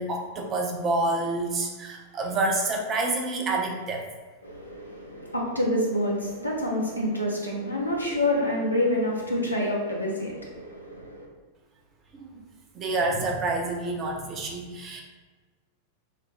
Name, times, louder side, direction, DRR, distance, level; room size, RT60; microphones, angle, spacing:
voice 1, 0.0-4.1 12.1-12.4 12.7-15.0, right 2 dB, 30° right, 1 dB, 0.7 m, -28 dB
voice 2, 4.4-11.3, left 1 dB, 90° left, -3 dB, 0.8 m, -27 dB
5.7 x 2.1 x 3.1 m, 1.4 s
figure-of-eight pair, 90°, 0 cm